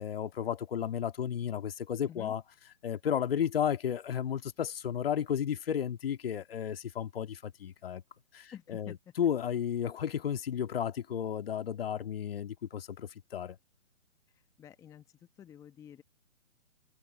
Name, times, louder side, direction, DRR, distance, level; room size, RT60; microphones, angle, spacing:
voice 1, 0.0-2.4 2.8-8.0 8.3-13.6, left 9 dB, 45° left, 2.3 m, -33 dB
voice 2, 8.5-9.0 14.6-15.0 15.4-16.0, left 9 dB, 10° left, 1.2 m, -49 dB
figure-of-eight pair, 135°, 40 cm